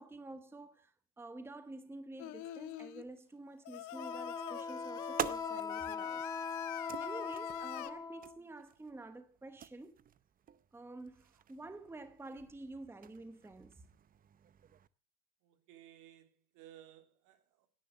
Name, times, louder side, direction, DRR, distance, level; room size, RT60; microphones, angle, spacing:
voice 1, 0.0-6.3 6.6-10.0 10.7-13.9, right 2 dB, 5° right, 1.1 m, -49 dB
Singing, 2.2-3.0 3.7-7.9, left 16 dB, 65° left, 1.2 m, -45 dB
Wind instrument woodwind instrument, 3.9-8.4, left 5 dB, 10° left, 0.9 m, -41 dB
sound 1, 4.4-14.9, right 9 dB, 25° right, 0.6 m, -48 dB
voice 2, 15.4-17.7, right 12 dB, 70° right, 3.1 m, -58 dB
17.0 x 10.5 x 6.7 m
cardioid pair, 145°, 33 cm